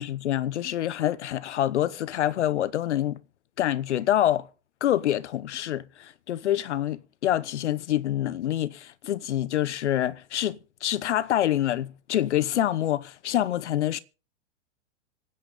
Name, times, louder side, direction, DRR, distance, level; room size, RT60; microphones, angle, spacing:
voice 1, 0.0-3.2 3.6-4.5 4.8-14.0, left 12 dB, 70° left, 1.1 m, -26 dB
25.5 x 9.4 x 3.8 m
hypercardioid pair, 115°, 36 cm